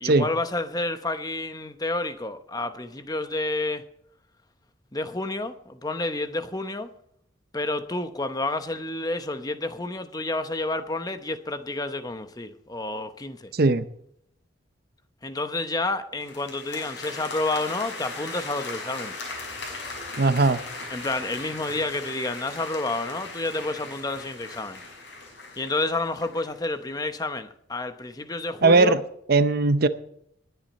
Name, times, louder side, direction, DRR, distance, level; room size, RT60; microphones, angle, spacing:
voice 1, 0.0-3.8 4.9-6.9 7.5-13.5 15.2-19.1 20.9-24.8 25.6-29.0, left 2 dB, 20° left, 0.9 m, -30 dB
voice 2, 13.5-13.9 20.2-20.6 28.6-29.0 29.3-29.9, right 3 dB, 50° right, 0.7 m, -19 dB
sound 1, 16.2-26.5, left 3 dB, 65° left, 5.9 m, -38 dB
20.0 x 9.3 x 4.2 m
head